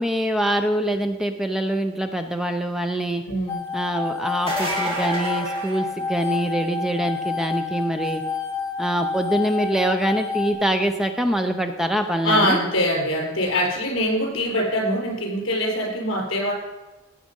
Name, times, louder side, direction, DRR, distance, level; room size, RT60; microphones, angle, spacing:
voice 1, 0.0-3.2 3.7-8.2 8.8-12.6, right 1 dB, ahead, 5 dB, 0.6 m, -24 dB
voice 2, 3.2-3.7 12.2-16.5, equal, 70° left, 0 dB, 4.5 m, -23 dB
sound 1, 3.5-10.5, left 5 dB, 15° left, 1.9 m, -29 dB
sound 2, 4.3-6.5 12.0-12.1 14.0-14.1, right 1 dB, 30° right, 2.5 m, -29 dB
17.0 x 7.4 x 5.3 m, 1.1 s
head